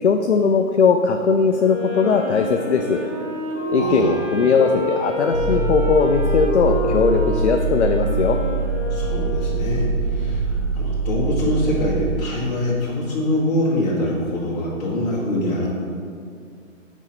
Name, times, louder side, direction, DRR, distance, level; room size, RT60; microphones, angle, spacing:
voice 1, 0.0-3.0 3.7-8.4, left 5 dB, 60° left, 5 dB, 0.5 m, -19 dB
Wind instrument woodwind instrument, 1.5-9.8, equal, 5° right, 1.3 m, -28 dB
voice 2, 3.8-4.1 8.9-15.7, left 1 dB, 30° left, -7 dB, 1.7 m, -24 dB
sound 1, 5.3-12.2, right 3 dB, 50° right, 0.9 m, -23 dB
6.1 x 4.4 x 6.0 m, 2.3 s
hypercardioid pair, 170°, 39 cm